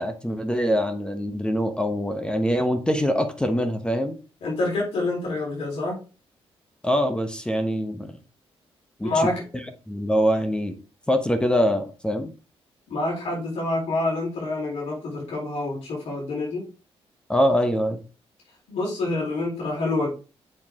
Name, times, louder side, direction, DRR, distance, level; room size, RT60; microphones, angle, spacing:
voice 1, 0.0-4.2 6.8-8.1 9.0-9.3 9.9-10.8 11.1-12.3 17.3-18.0, equal, 10° left, 1.0 m, -24 dB
voice 2, 4.4-6.0 9.0-9.4 12.9-16.6 18.7-20.1, left 2 dB, 80° left, 4.0 m, -27 dB
7.7 x 4.6 x 3.7 m
cardioid pair, 100°, 11 cm